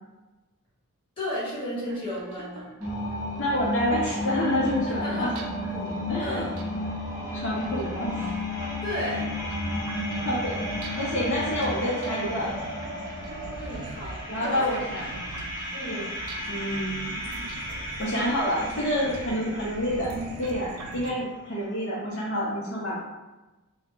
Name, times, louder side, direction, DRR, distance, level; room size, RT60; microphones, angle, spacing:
voice 1, 1.2-2.7 5.0-5.4 5.7-5.9 6.2-6.5 8.8-9.2 13.6-14.8 15.7-16.0 17.5-17.6, equal, 25° left, -8 dB, 1.1 m, -33 dB
sound 1, 1.8-21.1, right 2 dB, 75° right, 0.4 m, -42 dB
sound 2, 2.8-19.4, left 1 dB, 10° right, 0.7 m, -33 dB
voice 2, 3.4-5.3 6.1-6.5 7.3-8.3 10.2-10.6 11.0-12.6 14.3-15.1 15.9-16.1 16.5-17.2 18.0-20.1 20.4-23.0, equal, 60° left, -7 dB, 0.6 m, -28 dB
2.4 x 2.1 x 3.5 m, 1.1 s
head